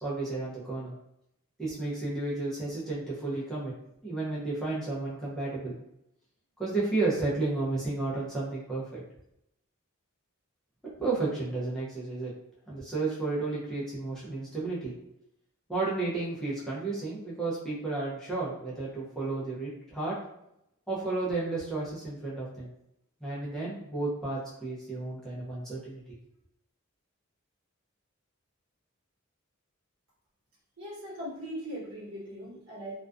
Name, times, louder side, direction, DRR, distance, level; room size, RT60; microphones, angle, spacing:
voice 1, 0.0-0.9 1.6-3.7 4.0-5.8 6.6-9.0 11.0-12.3 12.7-14.9 15.7-20.2 20.9-22.7 23.2-26.0, right 3 dB, 5° left, -8 dB, 0.6 m, -32 dB
voice 2, 30.8-33.0, equal, 65° right, -6 dB, 1.1 m, -39 dB
2.3 x 2.3 x 2.4 m, 0.80 s
head